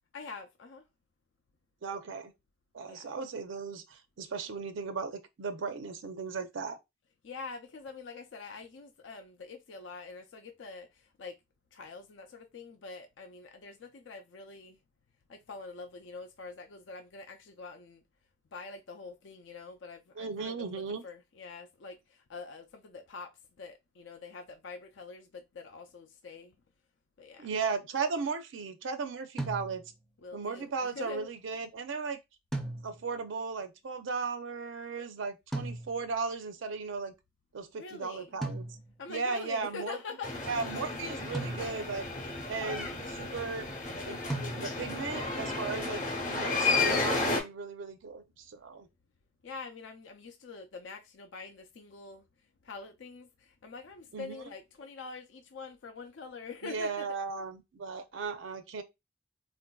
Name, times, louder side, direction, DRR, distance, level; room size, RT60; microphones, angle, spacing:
voice 1, 0.1-0.8 2.9-3.1 7.2-11.3 11.7-14.8 15.3-18.0 18.5-23.3 23.6-26.5 27.2-27.5 30.2-31.3 37.8-38.3 39.0-40.3 45.8-46.0 49.4-52.2 52.6-57.0, left 4 dB, 75° left, 0.5 m, -45 dB
voice 2, 1.8-2.3 2.7-6.8 20.2-21.0 27.4-29.8 30.3-32.2 32.8-37.1 37.5-38.6 39.1-40.0 40.5-43.7 44.0-44.2 44.5-48.9 54.1-54.4 56.6-58.8, right 4 dB, 80° right, 0.5 m, -36 dB
sound 1, 29.4-30.1 32.5-33.3 35.5-36.3 38.4-39.2 41.3-42.1 44.3-45.1, right 2 dB, ahead, 0.4 m, -38 dB
sound 2, 40.2-47.4, left 3 dB, 40° left, 0.8 m, -32 dB
3.8 x 2.5 x 2.2 m
head